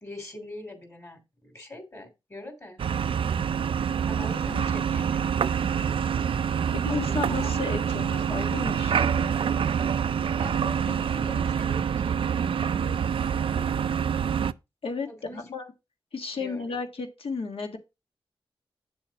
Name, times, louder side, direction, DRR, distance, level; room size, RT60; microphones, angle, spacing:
voice 1, 0.0-2.8 4.1-5.4 6.9-7.6 10.4-14.0 15.1-15.4 16.4-16.8, left 1 dB, 30° left, 2.9 m, -43 dB
sound 1, 2.8-14.5, right 7 dB, 65° right, 0.3 m, -26 dB
voice 2, 6.7-9.3 14.8-15.1 15.3-15.7 16.1-17.8, left 4 dB, 65° left, 1.5 m, -33 dB
8.3 x 7.0 x 2.8 m
wide cardioid pair, 110°, 10 cm